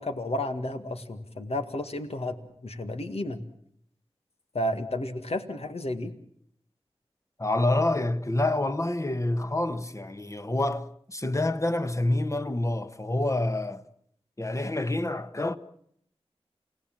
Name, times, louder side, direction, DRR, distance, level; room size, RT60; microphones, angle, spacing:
voice 1, 0.0-2.4 2.6-3.4 4.5-6.1, left 1 dB, 75° left, 1.9 m, -32 dB
voice 2, 7.4-13.8 14.4-15.6, left 2 dB, 30° left, 1.3 m, -27 dB
28.5 x 17.5 x 7.5 m
wide cardioid pair, 50°, 11 cm